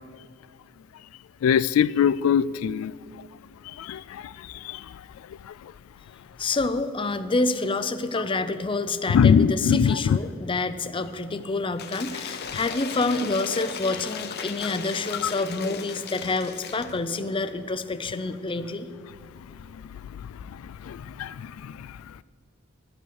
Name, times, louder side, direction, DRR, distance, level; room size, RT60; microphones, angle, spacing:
voice 1, 1.4-2.9 3.8-4.3 4.6-4.8 9.1-10.2 20.9-21.3 21.8-21.9, left 7 dB, 90° left, 17 dB, 0.3 m, -21 dB
voice 2, 6.4-18.9, left 3 dB, 25° left, 10 dB, 0.5 m, -28 dB
Cheering / Applause / Crowd, 11.8-17.0, left 6 dB, 50° left, 0.8 m, -36 dB
12.5 x 8.3 x 6.4 m, 2.3 s
head